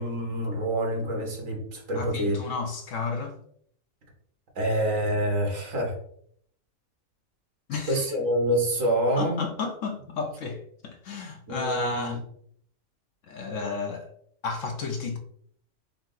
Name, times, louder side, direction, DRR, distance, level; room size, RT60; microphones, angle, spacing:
voice 1, 0.0-2.4 4.5-5.9 7.9-9.4 11.5-12.2, right 1 dB, 65° right, 0 dB, 1.6 m, -26 dB
voice 2, 2.0-3.3 7.7-8.1 9.2-12.2 13.3-14.1 14.4-15.2, left 4 dB, 65° left, 4 dB, 0.9 m, -32 dB
5.8 x 2.0 x 3.8 m, 0.65 s
omnidirectional pair, 1.5 m